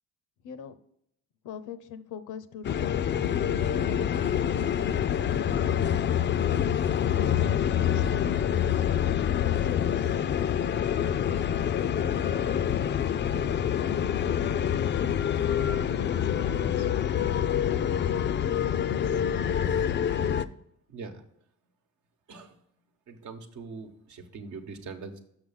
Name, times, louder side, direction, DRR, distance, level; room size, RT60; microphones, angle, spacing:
voice 1, 0.4-0.8 1.4-3.5 3.8-6.0 7.1-8.3 9.5-10.2 11.4-12.6 13.2-16.9 17.7-19.2, left 6 dB, 80° left, 13 dB, 0.7 m, -43 dB
sound 1, 2.6-20.5, left 9 dB, 40° left, 0.4 m, -26 dB
voice 2, 20.9-21.2 22.3-22.6 23.1-25.2, right 4 dB, 75° right, 5 dB, 1.1 m, -42 dB
6.1 x 6.0 x 5.6 m, 0.75 s
cardioid pair, 90°, 30 cm